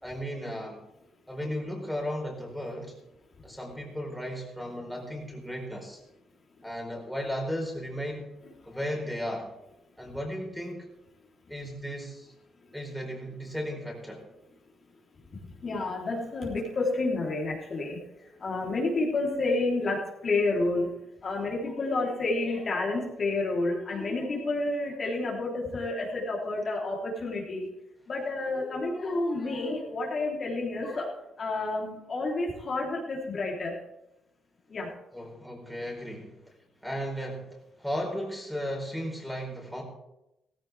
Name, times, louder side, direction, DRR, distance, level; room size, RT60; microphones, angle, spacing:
voice 1, 0.0-0.8 1.3-2.9 3.4-6.0 6.6-8.3 8.7-9.5 10.0-10.8 11.5-12.3 12.7-14.2 35.1-36.3 36.8-37.5 37.8-39.8, equal, ahead, -1 dB, 4.4 m, -35 dB
voice 2, 15.6-18.0 18.4-20.9 21.2-27.7 28.1-31.1 31.4-33.8 34.7-34.9, left 2 dB, 45° left, -2 dB, 3.6 m, -30 dB
15.5 x 15.5 x 3.5 m, 0.89 s
cardioid pair, 90°, 0 cm